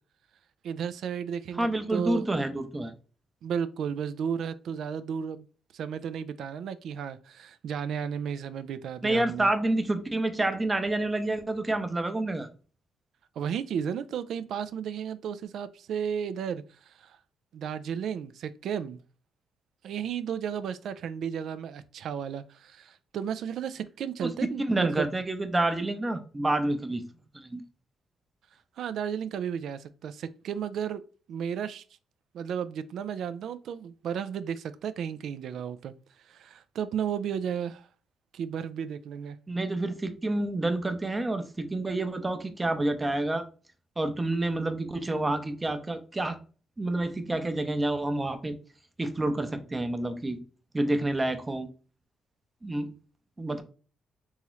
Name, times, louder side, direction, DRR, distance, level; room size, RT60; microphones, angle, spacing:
voice 1, 0.6-2.3 3.4-5.5 5.7-9.5 13.4-17.2 17.5-19.0 19.8-25.1 28.8-31.0 31.3-31.8 32.3-35.9 36.3-37.9 38.3-39.4, right 8 dB, 70° right, 0.3 m, -33 dB
voice 2, 1.6-2.9 9.0-12.5 24.2-27.1 27.3-27.6 39.5-43.5 44.0-46.4 46.8-48.6 49.0-50.4 50.7-51.7 52.6-52.9 53.4-53.6, right 2 dB, 20° right, 0.6 m, -28 dB
3.6 x 3.0 x 3.0 m
cardioid pair, 90°, 0 cm